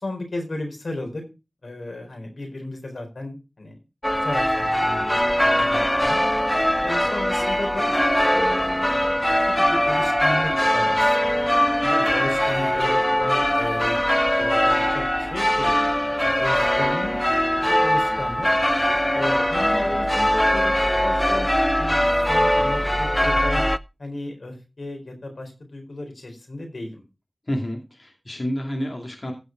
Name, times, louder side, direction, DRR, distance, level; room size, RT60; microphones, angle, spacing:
voice 1, 0.0-1.2 1.6-3.7 4.2-6.2 6.8-7.9 8.3-11.5 12.0-14.0 14.4-15.8 16.2-17.2 17.6-18.5 19.1-20.7 21.0-21.5 21.8-23.6 24.0-27.0, left 2 dB, 85° left, 3 dB, 4.2 m, -34 dB
sound 1, 4.0-23.8, equal, 10° left, 0.5 m, -21 dB
voice 2, 27.5-29.3, equal, 50° left, 1 dB, 2.5 m, -29 dB
15.5 x 5.4 x 4.6 m, 0.29 s
wide cardioid pair, 45°, 0 cm